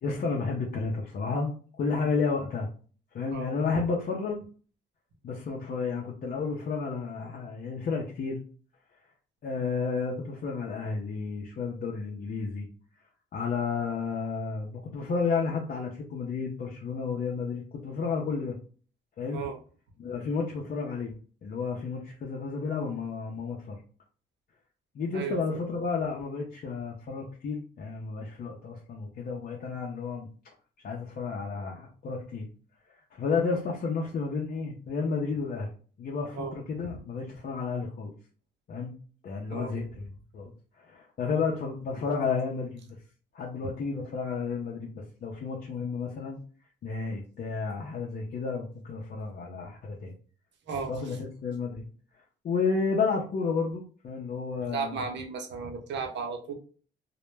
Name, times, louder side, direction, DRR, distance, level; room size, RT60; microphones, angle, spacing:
voice 1, 0.0-2.7 3.1-4.5 5.2-8.4 9.4-12.7 13.3-18.6 19.2-19.4 20.0-21.1 21.4-23.8 24.9-30.3 30.8-32.5 33.1-35.7 36.0-38.1 38.7-38.9 39.2-40.5 40.8-42.8 43.3-46.4 46.8-50.1 50.9-51.9 52.4-55.0, left 4 dB, 50° left, -2 dB, 0.5 m, -31 dB
voice 2, 25.1-25.6 36.4-36.5 39.5-39.7 50.7-50.9 54.7-56.5, right 5 dB, 65° right, 4 dB, 0.7 m, -34 dB
2.1 x 2.0 x 3.2 m, 0.40 s
cardioid pair, 90°, 20 cm